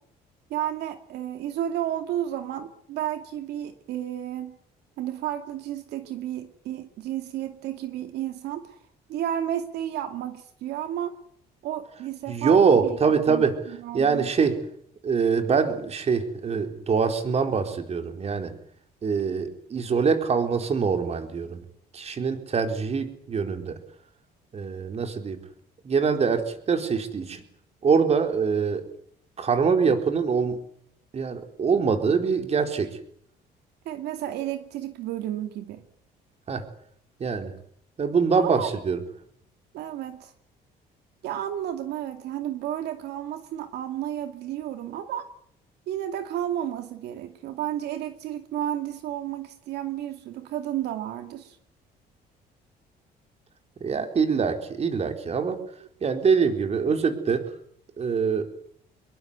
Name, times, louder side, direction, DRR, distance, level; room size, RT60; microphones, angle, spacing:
voice 1, 0.5-4.6 5.0-8.8 9.1-11.2 11.6-13.0 13.3-14.3 33.8-35.8 38.4-38.8 39.7-40.3 41.2-45.3 45.9-51.6, right 11 dB, 80° right, 7 dB, 2.5 m, -32 dB
voice 2, 12.3-13.6 13.9-14.6 15.0-18.5 19.0-21.6 21.9-23.8 24.5-25.4 25.8-27.4 27.8-28.8 29.4-30.6 31.1-33.0 36.5-36.6 37.2-37.5 38.0-39.0 53.8-55.6 56.0-57.5 58.0-58.5, right 5 dB, 40° right, 6 dB, 4.3 m, -24 dB
26.0 x 22.0 x 8.3 m, 0.68 s
cardioid pair, 110°, 17 cm